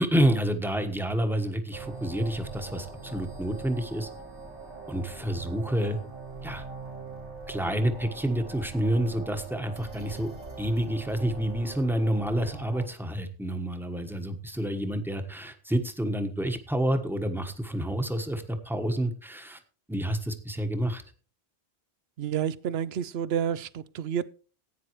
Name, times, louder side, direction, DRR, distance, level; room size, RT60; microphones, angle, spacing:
voice 1, 0.0-4.1 4.9-6.0 6.4-6.6 7.5-10.3 10.6-19.6 19.9-21.0, right 1 dB, ahead, 1.2 m, -28 dB
sound 1, 1.7-12.9, right 3 dB, 85° right, 3.9 m, -42 dB
voice 2, 22.2-24.3, right 9 dB, 70° right, 0.9 m, -29 dB
15.5 x 9.2 x 3.1 m
omnidirectional pair, 1.1 m